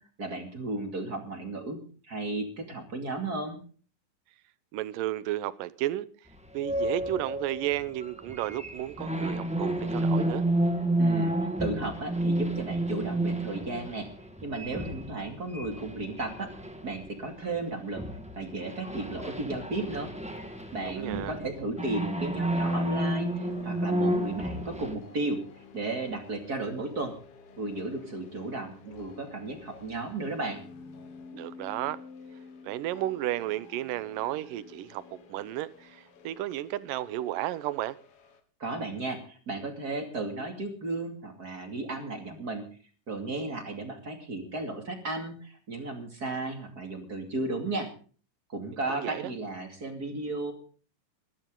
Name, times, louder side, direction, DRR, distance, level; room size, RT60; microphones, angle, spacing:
voice 1, 0.2-1.8 2.0-3.6 11.0-14.1 14.4-18.0 18.3-20.1 20.7-25.4 25.7-27.1 27.6-30.6 38.6-42.6 43.1-47.9 48.5-50.5, right 2 dB, 30° right, 2.6 m, -34 dB
voice 2, 4.7-6.1 6.5-10.5 20.8-21.3 31.3-32.0 32.6-35.0 35.3-38.0 48.9-49.3, right 14 dB, 90° right, 2.5 m, -33 dB
sound 1, 6.6-17.6 17.9-24.9, right 1 dB, 10° right, 0.4 m, -31 dB
sound 2, 20.3-38.4, left 5 dB, 50° left, 2.3 m, -50 dB
21.5 x 12.5 x 3.8 m
omnidirectional pair, 3.8 m